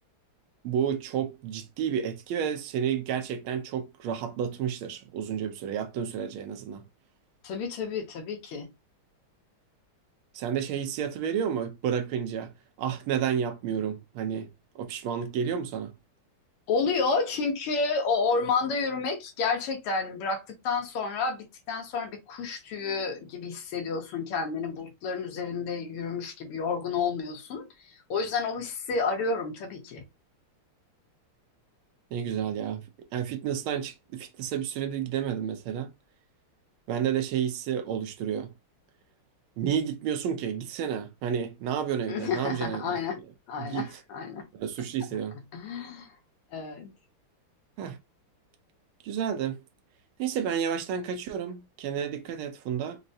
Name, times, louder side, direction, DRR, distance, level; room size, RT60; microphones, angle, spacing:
voice 1, 0.6-6.8 10.3-12.5 12.8-14.5 14.7-15.9 32.1-32.8 33.1-35.9 36.9-38.5 39.6-43.0 43.6-43.9 44.5-45.4 47.8-48.0 49.0-49.6 50.2-53.0, right 8 dB, 75° right, 1.5 m, -31 dB
voice 2, 7.4-8.7 16.7-30.0 42.1-43.2 43.5-44.5 45.5-46.1 46.5-46.9, left 4 dB, 85° left, 1.9 m, -30 dB
4.9 x 2.1 x 2.7 m
omnidirectional pair, 2.4 m